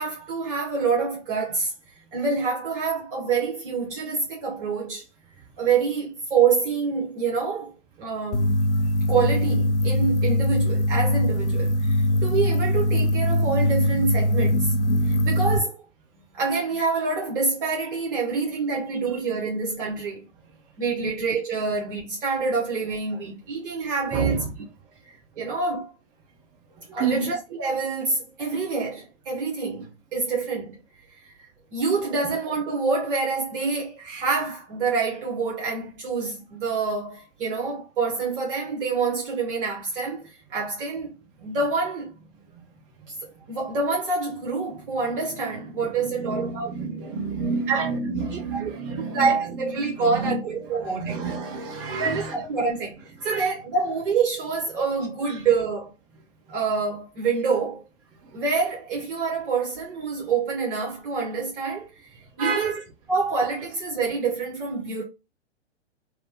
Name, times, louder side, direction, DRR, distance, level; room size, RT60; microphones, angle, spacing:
voice 1, 0.0-1.7 2.1-5.1 5.6-8.5 9.1-14.7 15.1-15.8 16.3-20.3 20.8-24.4 25.0-25.9 26.9-30.8 31.1-31.3 31.7-41.1 41.4-42.1 43.1-46.7 47.7-47.9 48.5-48.7 49.1-51.3 52.0-55.9 56.5-57.8 58.3-62.0 62.4-62.7 63.1-65.0, right 4 dB, 50° right, 1.1 m, -26 dB
sound 1, 8.3-15.6, left 1 dB, 70° left, 0.6 m, -22 dB
voice 2, 24.1-24.5 26.8-27.3 42.5-42.7 46.0-52.4 53.2-53.5 55.3-55.4 58.2-58.4 62.4-62.8, right 4 dB, 15° right, 0.4 m, -30 dB
2.9 x 2.1 x 2.9 m
figure-of-eight pair, 115°, 35 cm